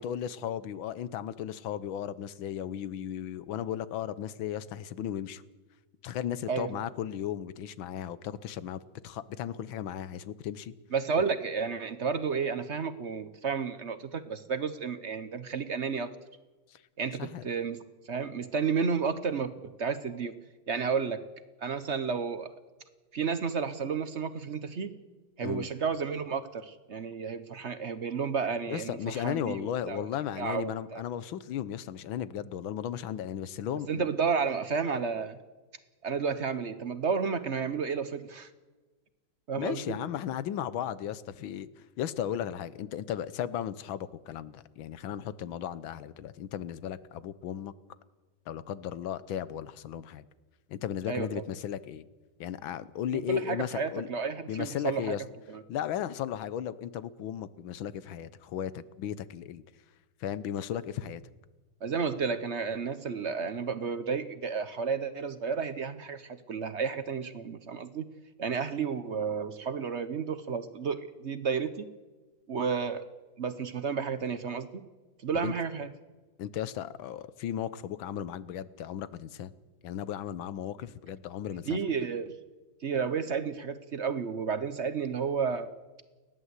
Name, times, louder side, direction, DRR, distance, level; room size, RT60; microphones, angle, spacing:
voice 1, 0.0-5.4 6.0-10.7 16.7-16.8 17.2-17.4 25.4-25.7 28.7-34.1 39.6-41.7 42.0-47.7 48.5-50.3 50.7-52.0 52.4-54.1 54.5-55.2 55.7-59.6 60.2-61.2 75.3-75.5 76.4-79.5 79.8-81.8, left 10 dB, 85° left, 16 dB, 1.7 m, -35 dB
voice 2, 10.9-16.1 17.0-17.8 18.1-20.3 20.7-21.2 21.6-22.6 23.1-24.9 25.4-30.1 30.4-31.0 33.9-35.4 36.0-38.5 39.5-40.0 51.1-51.4 53.1-55.2 55.5-55.6 61.8-68.1 68.4-71.9 72.5-73.1 73.4-74.8 75.2-75.9 81.7-82.4 82.8-85.7, right 5 dB, 50° right, 12 dB, 0.9 m, -32 dB
29.5 x 11.5 x 8.2 m, 1.2 s
omnidirectional pair, 2.1 m